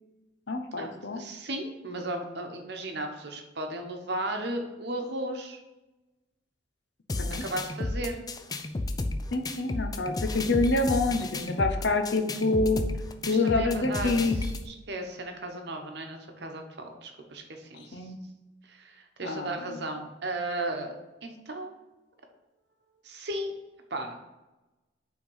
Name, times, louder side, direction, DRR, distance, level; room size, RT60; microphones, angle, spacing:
voice 1, 0.5-1.2 7.2-7.4 9.3-12.8 13.3-14.4 17.9-18.2 19.2-19.9, left 3 dB, 70° left, 5 dB, 0.8 m, -27 dB
voice 2, 1.1-5.6 7.4-8.2 13.3-18.1 18.7-21.7 23.0-23.6 23.9-24.1, right 1 dB, 60° right, 4 dB, 1.0 m, -35 dB
sound 1, 7.1-14.7, left 2 dB, 20° left, 0.4 m, -33 dB
5.7 x 3.7 x 5.5 m, 1.1 s
head